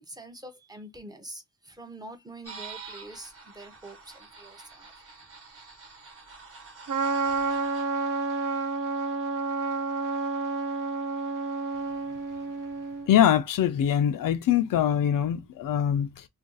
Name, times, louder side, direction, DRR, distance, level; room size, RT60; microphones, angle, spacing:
voice 1, 0.0-4.9, right 1 dB, 10° right, 0.5 m, -45 dB
sound 1, 2.4-7.8, right 4 dB, 45° right, 1.0 m, -46 dB
Trumpet, 6.9-13.1, right 4 dB, 75° right, 0.7 m, -30 dB
voice 2, 13.1-16.3, left 10 dB, 90° left, 0.5 m, -23 dB
2.5 x 2.3 x 3.8 m
wide cardioid pair, 145°, 32 cm